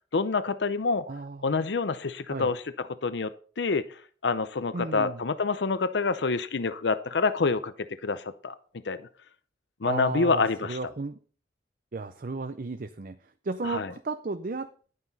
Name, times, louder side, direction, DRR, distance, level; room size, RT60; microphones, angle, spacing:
voice 1, 0.1-1.0 1.4-2.6 3.0-3.3 3.6-3.8 4.2-7.7 8.0-8.5 8.8-9.0 9.8-10.8 13.7-13.9, left 4 dB, 85° left, 13 dB, 0.7 m, -27 dB
voice 2, 1.1-1.7 2.3-2.5 4.7-5.2 9.8-11.2 11.9-13.2 13.4-14.7, right 3 dB, 50° right, 10 dB, 0.6 m, -34 dB
11.0 x 9.6 x 4.1 m, 0.41 s
head